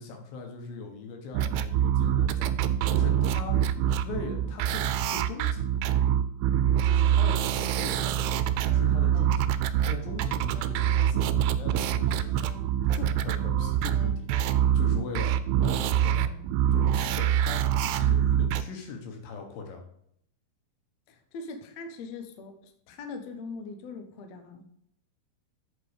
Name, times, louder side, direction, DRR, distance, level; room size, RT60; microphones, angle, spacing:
voice 1, 0.0-2.5 2.9-3.6 4.0-5.8 6.8-12.5 12.9-15.4 15.6-16.3 16.7-19.9, left 4 dB, 70° left, 3 dB, 3.0 m, -40 dB
sound 1, 1.3-18.6, right 10 dB, 90° right, 2.6 m, -25 dB
sound 2, 8.0-9.4 9.8-10.8 11.7-13.2 13.6-14.6, right 2 dB, 55° right, 1.6 m, -50 dB
voice 2, 16.0-16.5 21.1-24.7, left 4 dB, 85° left, 6 dB, 1.5 m, -42 dB
8.0 x 5.4 x 5.1 m, 0.72 s
omnidirectional pair, 4.6 m